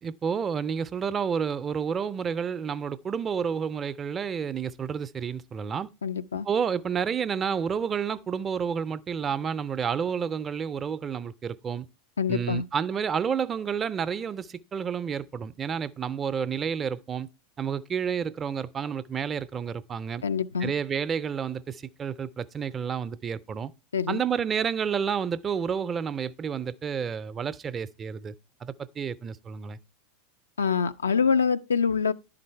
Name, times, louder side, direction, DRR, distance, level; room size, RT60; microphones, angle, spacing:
voice 1, 0.0-5.9 6.5-11.9 12.3-17.3 17.6-20.2 20.6-23.7 24.1-28.3 28.6-29.8, right 7 dB, 30° right, 0.4 m, -30 dB
voice 2, 6.0-6.5 12.2-12.7 20.2-20.7 23.9-24.2 30.6-32.1, left 6 dB, 90° left, 0.3 m, -25 dB
10.5 x 3.9 x 4.4 m
hypercardioid pair, 90°, 0 cm